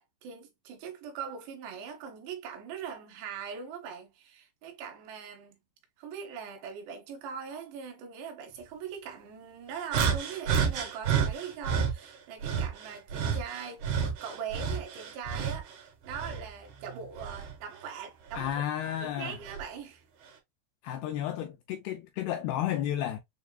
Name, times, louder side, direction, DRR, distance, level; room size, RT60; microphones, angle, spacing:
voice 1, 0.0-5.6 6.0-18.6 19.0-20.0, right 7 dB, 90° right, 3.3 m, -41 dB
sound 1, 9.9-11.9 12.4-15.7 16.1-17.6 18.3-18.5 19.4-19.6, right 7 dB, 65° right, 2.1 m, -30 dB
voice 2, 18.3-19.4 20.8-23.2, left 11 dB, 85° left, 2.1 m, -32 dB
6.9 x 2.3 x 2.2 m
omnidirectional pair, 4.8 m